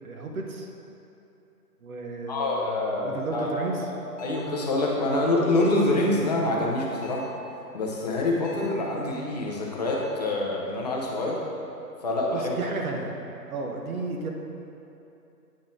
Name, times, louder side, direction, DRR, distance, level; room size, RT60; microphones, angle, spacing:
voice 1, 0.0-0.7 1.8-3.9 12.3-13.1 13.5-14.3, right 3 dB, 60° right, 1 dB, 1.0 m, -33 dB
voice 2, 2.3-3.5 4.2-7.2 7.7-11.4 12.0-12.5, left 2 dB, 25° left, -3 dB, 0.6 m, -26 dB
sound 1, 4.2-4.6 5.6-6.0 7.0-7.4 8.4-8.8 9.9-10.3, right 2 dB, 45° left, 0.9 m, -42 dB
8.7 x 3.9 x 3.7 m, 2.8 s
hypercardioid pair, 145°, 49 cm